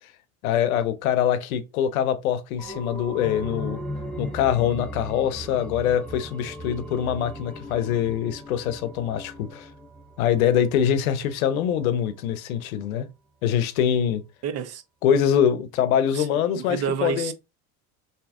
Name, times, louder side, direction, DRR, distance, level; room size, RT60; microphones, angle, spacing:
voice 1, 0.4-3.8 4.2-9.7 10.2-13.1 13.4-14.2 15.0-17.3, left 9 dB, 85° left, 0.7 m, -24 dB
sound 1, 2.6-11.9 12.3-12.4, equal, 5° left, 0.4 m, -38 dB
voice 2, 14.4-14.8 16.1-16.3 16.5-17.3, right 7 dB, 40° right, 0.6 m, -29 dB
3.5 x 2.7 x 3.5 m
supercardioid pair, 105°, 41 cm